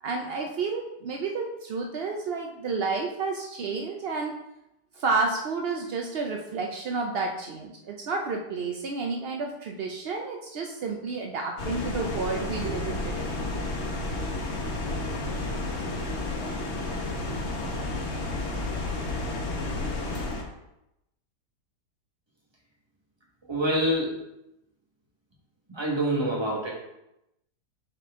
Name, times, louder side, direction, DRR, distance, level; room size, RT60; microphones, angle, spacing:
voice 1, 0.0-4.4 4.9-13.3, right 4 dB, 70° right, 2 dB, 0.5 m, -30 dB
sound 1, 11.6-20.4, left 2 dB, 45° left, 1.2 m, -31 dB
voice 2, 23.5-24.2 25.7-26.7, right 1 dB, 15° right, -3 dB, 1.4 m, -26 dB
7.9 x 4.2 x 3.6 m, 0.87 s
omnidirectional pair, 1.8 m